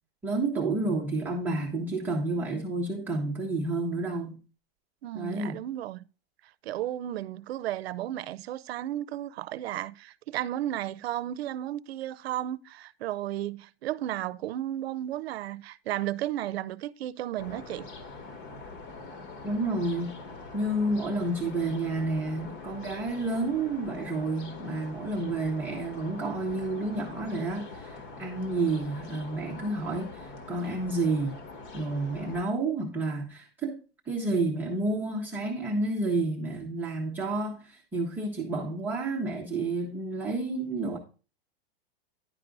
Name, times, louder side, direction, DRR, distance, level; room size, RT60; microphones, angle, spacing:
voice 1, 0.2-4.4 5.1-5.6 19.4-20.2 20.5-31.4 31.7-33.8 34.1-41.0, right 2 dB, 5° right, 0.6 m, -30 dB
voice 2, 5.0-6.0 6.6-17.9, right 13 dB, 75° right, 0.6 m, -34 dB
sound 1, 17.4-32.4, left 3 dB, 55° left, 1.5 m, -44 dB
10.5 x 4.7 x 3.8 m
supercardioid pair, 170°, 31 cm